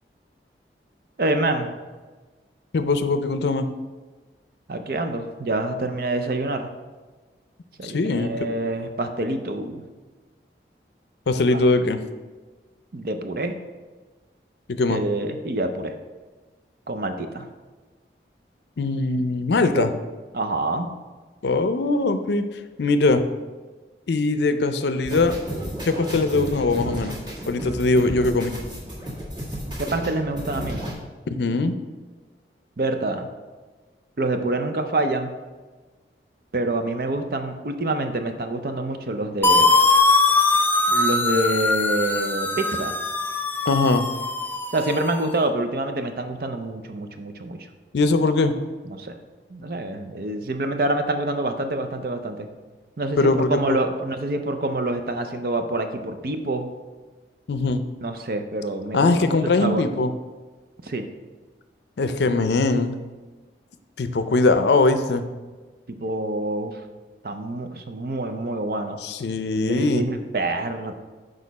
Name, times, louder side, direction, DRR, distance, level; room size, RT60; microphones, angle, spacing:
voice 1, 1.2-1.7 4.7-6.7 7.8-9.8 11.5-11.6 12.9-13.6 14.9-15.9 16.9-17.5 19.6-19.9 20.3-20.9 29.8-30.8 32.8-33.3 34.2-35.3 36.5-39.8 40.9-43.0 44.7-47.6 48.9-49.2 49.5-52.5 53.0-56.7 58.0-59.9 60.8-61.0 66.0-66.8 67.2-69.0 69.7-71.0, right 2 dB, 55° right, 7 dB, 0.6 m, -26 dB
voice 2, 2.7-3.7 7.8-8.5 11.3-12.0 14.7-15.0 18.8-19.9 21.4-22.5 22.8-23.2 24.1-25.4 25.8-27.2 27.5-28.5 31.3-31.8 43.7-44.1 47.9-48.5 53.2-53.6 57.5-57.8 58.9-60.1 62.0-62.9 64.0-65.3 69.0-70.1, left 3 dB, 75° left, 10 dB, 0.5 m, -21 dB
sound 1, 25.0-30.9, equal, 25° right, 1.7 m, -33 dB
sound 2, 39.4-45.2, left 3 dB, 10° left, 0.3 m, -21 dB
6.5 x 5.0 x 4.1 m, 1.3 s
head